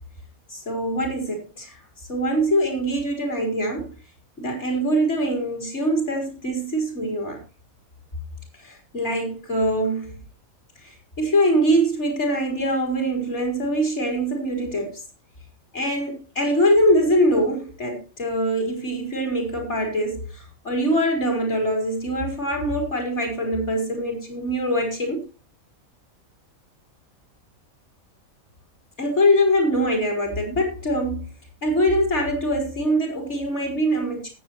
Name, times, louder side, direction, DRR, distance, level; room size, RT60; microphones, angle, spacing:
voice 1, 0.5-1.8 2.1-3.9 4.4-7.4 8.6-10.2 10.8-15.0 15.7-25.2 29.0-31.3 31.6-34.3, equal, 50° left, 4.8 m, -23 dB
19.0 x 7.9 x 3.1 m
omnidirectional pair, 1.5 m